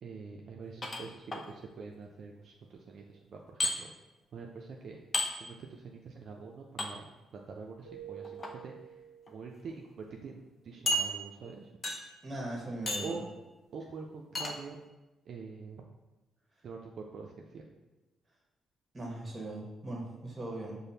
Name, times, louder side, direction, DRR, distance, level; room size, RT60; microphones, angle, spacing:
voice 1, 0.0-3.9 4.3-5.0 5.4-7.1 7.3-8.7 9.3-11.7 13.0-13.3 13.7-14.8 15.3-15.8 16.6-17.7, right 4 dB, 60° right, 0 dB, 0.3 m, -45 dB
sound 1, 0.8-1.4 3.6-3.7 5.1-5.3 6.8-6.9 8.2-8.5 9.3-9.4 9.7-9.8 10.9-11.5 11.8-12.2 12.9-13.2 14.3-14.5, left 1 dB, 30° left, 0.5 m, -32 dB
Keyboard (musical), 7.8-9.9, right 9 dB, ahead, 1.3 m, -48 dB
voice 2, 12.2-13.2 18.9-20.8, right 1 dB, 25° right, -1 dB, 0.9 m, -39 dB
5.0 x 2.0 x 2.7 m, 1.1 s
cardioid pair, 90°, 0 cm